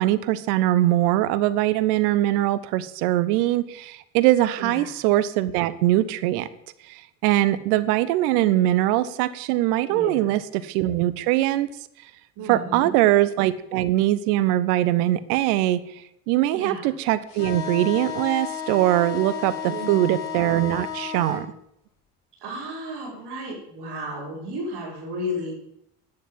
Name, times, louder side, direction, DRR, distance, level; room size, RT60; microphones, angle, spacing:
voice 1, 0.0-6.5 6.9-11.7 12.5-21.5, right 14 dB, 75° right, 16 dB, 0.9 m, -22 dB
voice 2, 4.6-4.9 9.9-10.3 12.4-12.9 16.5-16.9 19.6-20.2 22.4-25.6, equal, 60° right, -7 dB, 5.7 m, -33 dB
sound 1, 17.3-21.4, left 8 dB, 80° left, 2.9 m, -33 dB
11.5 x 9.8 x 7.4 m, 0.77 s
hypercardioid pair, 55°, 45 cm